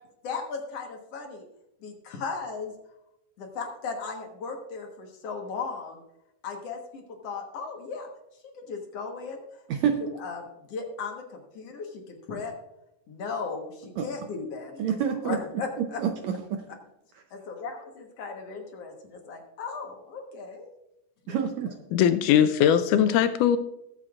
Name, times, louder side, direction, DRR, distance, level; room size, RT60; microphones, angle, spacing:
voice 1, 0.2-1.5 1.8-2.7 3.4-6.0 6.4-8.1 8.6-9.4 10.2-12.5 13.1-15.0 15.2-16.0 17.3-20.7 21.3-21.4, left 5 dB, 60° left, 2 dB, 2.0 m, -36 dB
voice 2, 14.8-15.4 15.8-16.6 21.3-21.7, right 8 dB, 75° right, 5 dB, 1.7 m, -27 dB
voice 3, 21.9-23.6, left 9 dB, 80° left, 11 dB, 2.0 m, -20 dB
21.0 x 7.7 x 2.4 m, 0.86 s
omnidirectional pair, 3.7 m